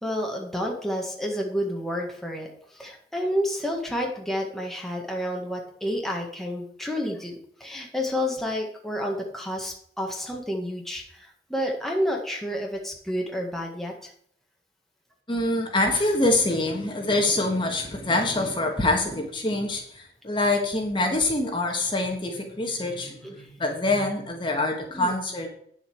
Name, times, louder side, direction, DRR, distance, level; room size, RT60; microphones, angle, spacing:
voice 1, 0.0-14.1 23.2-23.5 24.9-25.1, equal, ahead, 0 dB, 1.6 m, -30 dB
voice 2, 15.3-25.5, left 2 dB, 30° left, 2 dB, 1.6 m, -25 dB
9.4 x 7.4 x 4.7 m, 0.64 s
head